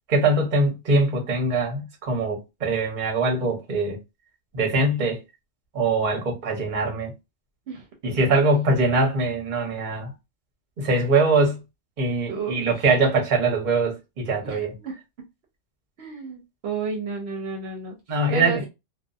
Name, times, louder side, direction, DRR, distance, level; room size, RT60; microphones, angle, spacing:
voice 1, 0.1-4.0 4.5-5.2 5.7-7.1 8.0-10.1 10.8-11.6 12.0-14.7 18.1-18.6, right 2 dB, 45° right, 0.9 m, -22 dB
voice 2, 12.3-12.8 14.4-15.0 16.0-18.0 18.3-18.7, right 5 dB, 70° right, 0.9 m, -32 dB
2.5 x 2.3 x 2.3 m
omnidirectional pair, 1.1 m